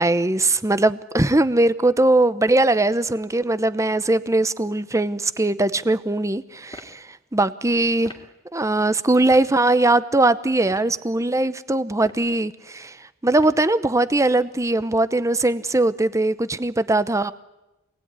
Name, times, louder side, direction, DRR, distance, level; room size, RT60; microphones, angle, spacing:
voice 1, 0.0-7.0 7.3-8.1 8.5-13.0 13.2-17.3, right 2 dB, 15° right, 14 dB, 0.8 m, -20 dB
sound 1, 6.7-7.0 8.0-8.3 9.3-9.5 10.6-11.0 11.9-12.3 13.4-13.7, left 1 dB, 20° left, 2.7 m, -42 dB
26.5 x 19.5 x 9.7 m, 1.0 s
head